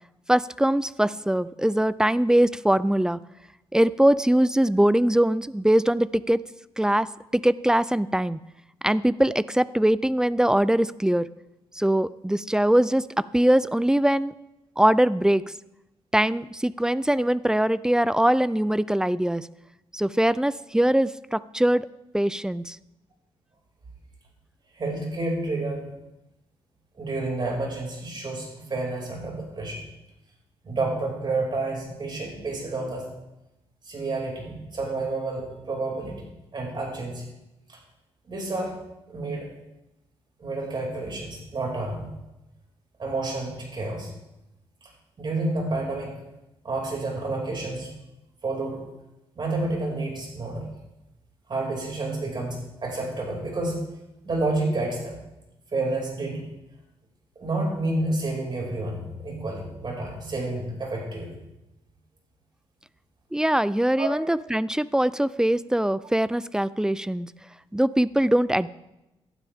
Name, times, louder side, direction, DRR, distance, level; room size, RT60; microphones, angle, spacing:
voice 1, 0.3-3.2 3.7-6.4 6.8-7.1 7.3-8.4 8.8-11.3 11.7-14.3 14.8-15.4 16.1-19.5 19.9-21.9 22.1-22.8 63.3-67.3 67.7-68.7, right 1 dB, 5° right, 18 dB, 0.4 m, -22 dB
voice 2, 24.8-25.9 27.0-29.8 30.6-33.0 33.9-36.3 36.5-37.2 37.7-37.8 38.3-38.8 39.1-39.5 40.4-42.1 43.0-44.1 45.2-46.1 46.6-47.9 48.4-48.8 49.4-50.6 51.5-53.8 54.2-55.2 55.7-56.4 57.4-61.3 64.0-64.1, right 2 dB, 45° right, -1 dB, 5.7 m, -29 dB
17.5 x 12.0 x 3.6 m, 0.94 s
cardioid pair, 80°, 11 cm